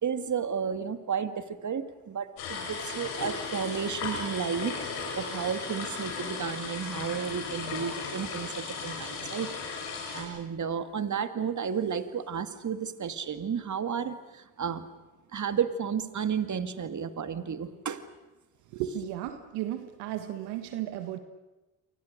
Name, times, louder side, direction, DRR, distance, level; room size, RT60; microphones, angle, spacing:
voice 1, 0.0-4.8 5.2-9.5 10.1-14.8 15.3-18.1, right 7 dB, 50° right, 10 dB, 2.2 m, -32 dB
sound 1, 2.4-10.2, left 5 dB, 85° left, 6.8 m, -36 dB
voice 2, 18.7-21.2, right 11 dB, 90° right, 9 dB, 1.6 m, -34 dB
29.5 x 24.5 x 6.6 m, 1.1 s
supercardioid pair, 55°, 38 cm